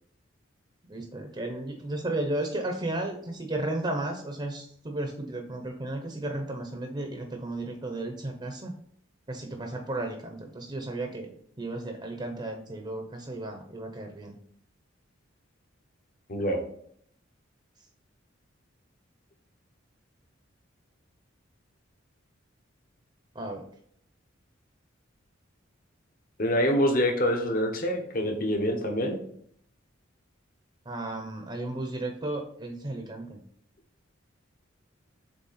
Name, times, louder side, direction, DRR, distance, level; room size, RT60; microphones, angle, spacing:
voice 1, 0.9-8.7 9.3-14.4 23.3-23.6 30.9-33.4, right 2 dB, 25° right, 3 dB, 0.8 m, -34 dB
voice 2, 16.3-16.6 26.4-29.2, equal, 45° left, 4 dB, 1.1 m, -26 dB
7.5 x 3.5 x 4.2 m, 0.64 s
head